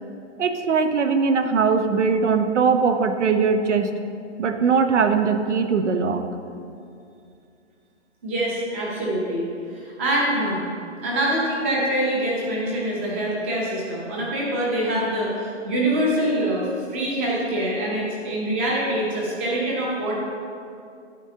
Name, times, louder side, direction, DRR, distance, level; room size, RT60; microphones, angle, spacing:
voice 1, 0.4-3.9 4.4-6.2, right 5 dB, 75° right, 8 dB, 0.9 m, -20 dB
voice 2, 8.2-10.7 11.0-20.2, right 1 dB, 10° right, -4 dB, 0.6 m, -25 dB
11.0 x 7.3 x 2.8 m, 2.4 s
hypercardioid pair, 170°, 35 cm